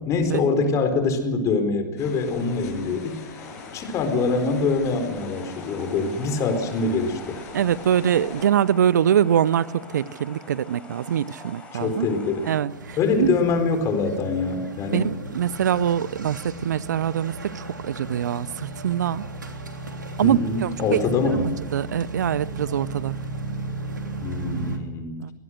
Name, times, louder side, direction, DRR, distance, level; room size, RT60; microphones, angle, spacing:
voice 1, 0.0-3.2 3.7-7.4 11.7-12.5 13.0-15.1 20.2-21.6 24.2-25.2, left 4 dB, 30° left, 4.4 m, -24 dB
sound 1, 2.0-8.5, left 5 dB, 50° left, 6.8 m, -42 dB
sound 2, 3.4-12.6, left 3 dB, 10° left, 7.8 m, -44 dB
voice 2, 7.5-12.1 12.5-13.3 14.9-19.3 20.2-21.0 21.3-23.2 25.2-25.3, right 9 dB, 65° right, 0.7 m, -24 dB
sound 3, 12.7-24.8, right 2 dB, 85° right, 3.3 m, -35 dB
23.5 x 19.5 x 6.5 m
figure-of-eight pair, 100°, 10 cm